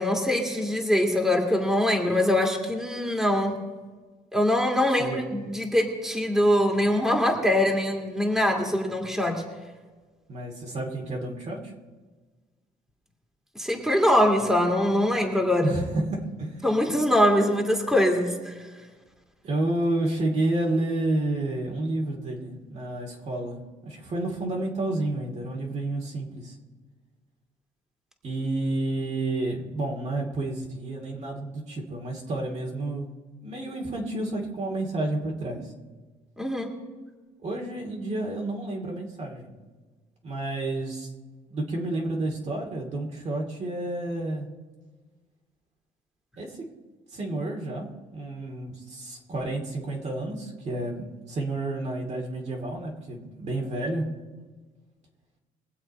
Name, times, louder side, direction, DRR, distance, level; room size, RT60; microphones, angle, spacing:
voice 1, 0.0-3.5 4.3-9.4 13.6-15.7 16.6-18.6 36.4-36.7, left 1 dB, ahead, 1 dB, 2.4 m, -23 dB
voice 2, 10.3-11.7 15.6-16.6 19.4-26.6 28.2-33.1 33.4-35.6 37.4-39.5 40.2-41.1 41.5-44.5 46.4-46.6 47.1-54.1, right 2 dB, 40° right, 1 dB, 2.3 m, -30 dB
22.5 x 7.8 x 4.3 m, 1.3 s
cardioid pair, 110°, 17 cm